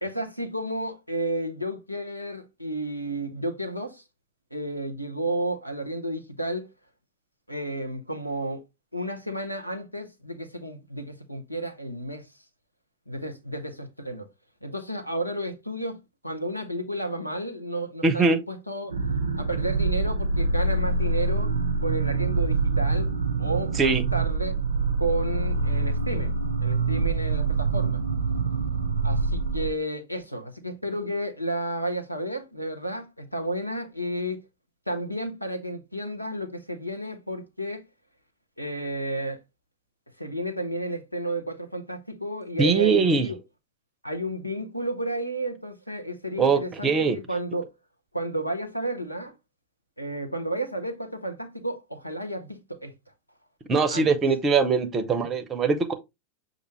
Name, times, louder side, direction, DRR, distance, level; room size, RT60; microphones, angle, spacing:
voice 1, 0.0-4.0 4.5-6.7 7.5-8.6 8.9-12.3 13.1-14.3 14.6-18.9 19.4-21.5 21.8-23.1 23.4-24.6 25.0-28.0 29.0-34.4 34.9-37.8 38.6-39.4 40.2-43.4 44.0-47.7 48.1-49.3 50.0-52.9 53.7-54.1, right 1 dB, 90° left, 0.7 m, -32 dB
voice 2, 18.0-18.4 23.8-24.0 42.6-43.3 46.4-47.2 53.7-55.9, right 4 dB, 25° right, 0.8 m, -22 dB
sound 1, 18.9-29.7, right 3 dB, 75° right, 0.5 m, -25 dB
6.5 x 2.5 x 3.1 m
figure-of-eight pair, 90°, 0 cm